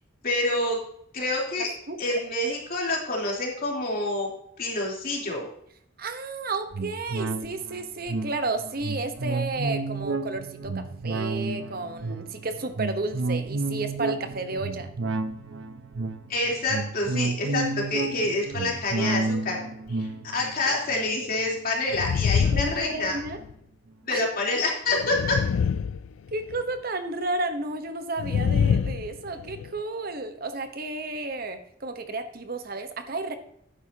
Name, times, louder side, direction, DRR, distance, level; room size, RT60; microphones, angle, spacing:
voice 1, 0.2-0.8 1.1-1.7 2.0-4.3 4.6-5.4 16.3-19.6 19.9-23.2 24.0-25.4, left 2 dB, 50° left, -2 dB, 3.4 m, -27 dB
voice 2, 1.9-2.2 6.0-14.9 20.6-20.8 22.5-23.4 24.1-24.2 26.3-33.4, right 2 dB, 50° right, 8 dB, 1.0 m, -32 dB
sound 1, 6.7-22.5 22.9-23.0, right 3 dB, 75° right, 0.8 m, -31 dB
sound 2, 21.9-23.5 24.9-26.6 28.2-29.7, left 7 dB, 85° left, 0.3 m, -26 dB
11.5 x 9.7 x 2.8 m, 0.71 s
head